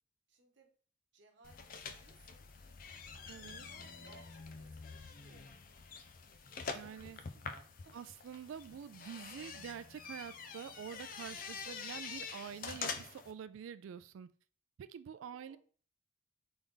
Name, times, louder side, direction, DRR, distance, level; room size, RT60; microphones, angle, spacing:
voice 1, 0.3-0.7 1.1-2.5 3.1-5.5 6.7-8.0 15.3-15.6, right 3 dB, 65° right, 1.0 m, -64 dB
sound 1, 1.4-13.3, left 5 dB, 45° left, 0.4 m, -46 dB
voice 2, 3.3-3.7 6.7-7.2 7.9-14.3 14.8-15.6, right 8 dB, 90° right, 0.3 m, -47 dB
4.0 x 3.5 x 3.7 m
head